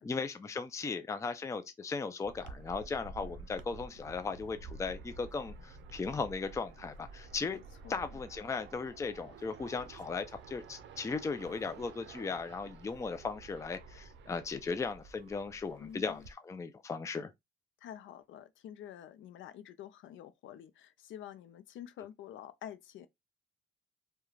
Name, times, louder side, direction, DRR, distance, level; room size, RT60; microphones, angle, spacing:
voice 1, 0.0-7.6 7.9-17.3, left 4 dB, 15° left, 0.4 m, -37 dB
sound 1, 2.2-16.3, right 3 dB, 70° right, 0.5 m, -51 dB
voice 2, 7.4-8.0 15.8-16.3 17.8-23.1, left 10 dB, 75° left, 0.5 m, -48 dB
2.3 x 2.2 x 3.1 m
cardioid pair, 90°, 20 cm